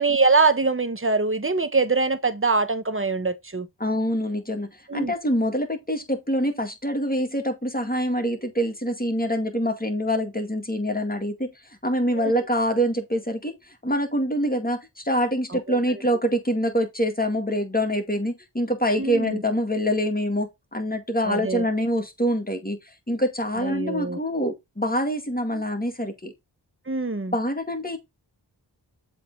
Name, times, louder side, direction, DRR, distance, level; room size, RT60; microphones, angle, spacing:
voice 1, 0.0-3.7 4.9-5.1 12.1-12.3 15.5-15.8 19.0-19.4 21.3-21.7 23.6-24.2 25.5-25.6 26.9-27.3, right 3 dB, 30° right, 1.1 m, -23 dB
voice 2, 3.8-11.5 11.8-26.3 27.3-28.0, equal, 20° left, 2.1 m, -25 dB
7.5 x 3.6 x 4.1 m
wide cardioid pair, 50°, 43 cm